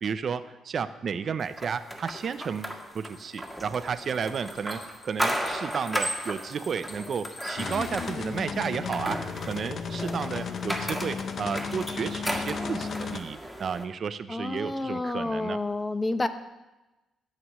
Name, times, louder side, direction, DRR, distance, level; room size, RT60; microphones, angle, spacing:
voice 1, 0.0-15.6, right 6 dB, 50° right, 12 dB, 0.6 m, -32 dB
sound 1, 1.6-13.8, equal, ahead, 1.4 m, -35 dB
sound 2, 2.4-8.0, left 3 dB, 75° left, 2.0 m, -48 dB
sound 3, 7.6-13.2, left 5 dB, 55° left, 0.7 m, -34 dB
voice 2, 14.3-16.3, left 2 dB, 20° left, 10 dB, 0.7 m, -29 dB
14.5 x 7.8 x 3.1 m, 1.0 s
cardioid pair, 90°, 0 cm